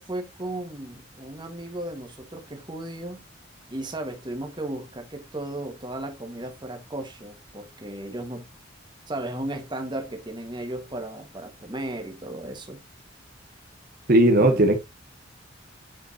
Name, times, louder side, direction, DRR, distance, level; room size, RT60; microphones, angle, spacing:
voice 1, 0.0-3.2 3.7-8.5 9.1-12.8 14.4-14.7, right 1 dB, 25° right, 1.6 m, -35 dB
voice 2, 14.1-14.8, right 1 dB, 50° right, 1.1 m, -17 dB
8.9 x 5.2 x 2.8 m
head